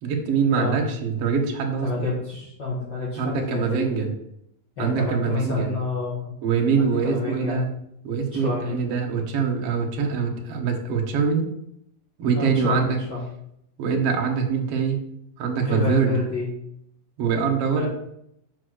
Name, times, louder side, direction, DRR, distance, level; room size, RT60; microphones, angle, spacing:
voice 1, 0.0-2.1 3.2-4.1 4.8-5.7 6.4-7.7 8.0-11.5 12.2-13.0 13.8-15.1 15.4-16.2 17.2-17.9, right 6 dB, 55° right, 2 dB, 1.8 m, -24 dB
voice 2, 1.8-3.9 4.8-6.3 6.8-7.6 8.3-8.8 12.4-13.2 15.6-16.5 17.7-17.9, left 2 dB, 35° left, -7 dB, 2.2 m, -28 dB
6.6 x 5.2 x 6.4 m, 0.75 s
omnidirectional pair, 4.2 m